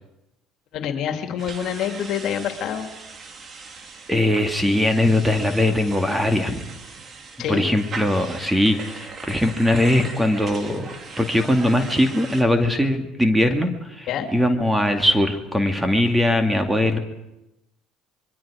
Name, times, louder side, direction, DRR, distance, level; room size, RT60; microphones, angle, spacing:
voice 1, 0.7-2.9 7.4-7.7 14.1-14.3, left 8 dB, 60° left, 5 dB, 2.7 m, -26 dB
sound 1, 1.4-12.4, right 4 dB, 40° right, 2.8 m, -39 dB
voice 2, 4.1-6.6 7.5-10.9 11.2-17.0, left 1 dB, 5° right, 5 dB, 2.2 m, -20 dB
26.0 x 22.5 x 5.0 m, 0.94 s
supercardioid pair, 85°, 0 cm